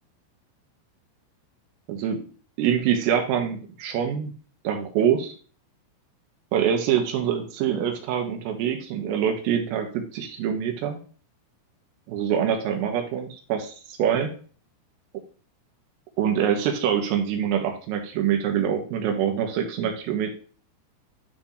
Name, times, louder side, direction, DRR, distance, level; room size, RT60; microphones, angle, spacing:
voice 1, 1.9-2.3 2.6-4.3 4.7-5.3 6.5-11.0 12.1-14.3 16.2-20.3, right 8 dB, 85° right, 3 dB, 4.1 m, -25 dB
12.5 x 4.4 x 3.1 m, 0.40 s
omnidirectional pair, 5.8 m